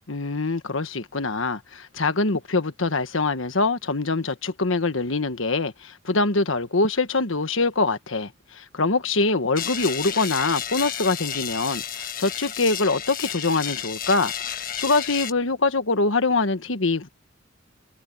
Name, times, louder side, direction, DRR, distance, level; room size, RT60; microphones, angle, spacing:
voice 1, 0.1-17.1, left 3 dB, 80° left, 1.4 m, -24 dB
sound 1, 9.5-15.3, left 9 dB, 45° left, 1.4 m, -32 dB
head